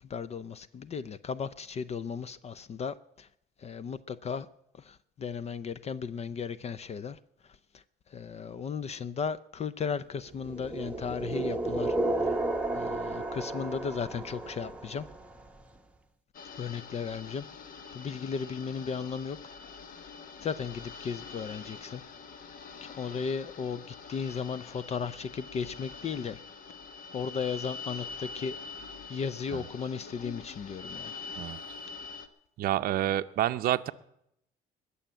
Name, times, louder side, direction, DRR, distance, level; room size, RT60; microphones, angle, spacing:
voice 1, 0.0-3.3 3.6-4.5 4.7-12.0 12.2-12.4 12.7-15.1 16.6-17.5 17.9-19.4 20.4-22.0 22.8-26.4 27.1-28.6 29.1-31.2, left 6 dB, 40° left, 0.6 m, -36 dB
sound 1, 10.4-15.4, right 2 dB, 5° right, 1.1 m, -32 dB
sound 2, 16.3-32.3, left 4 dB, 55° left, 1.2 m, -45 dB
voice 2, 32.6-33.9, right 13 dB, 60° right, 0.6 m, -28 dB
20.5 x 7.1 x 8.8 m
cardioid pair, 110°, 17 cm